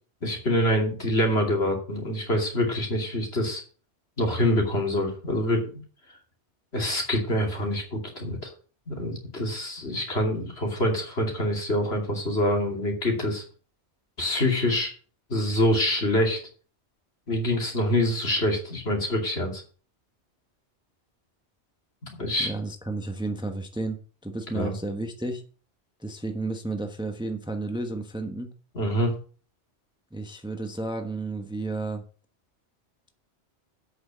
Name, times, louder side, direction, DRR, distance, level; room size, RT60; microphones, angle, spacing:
voice 1, 0.2-3.6 4.2-5.6 6.7-8.5 8.9-13.4 14.2-14.9 15.3-16.4 17.3-19.6 22.2-22.5 24.5-24.7 28.7-29.1, left 1 dB, 60° left, 1 dB, 3.0 m, -25 dB
voice 2, 22.4-25.4 26.0-28.5 30.1-32.0, right 2 dB, 5° right, 5 dB, 1.1 m, -32 dB
8.3 x 6.3 x 7.3 m, 0.39 s
omnidirectional pair, 1.2 m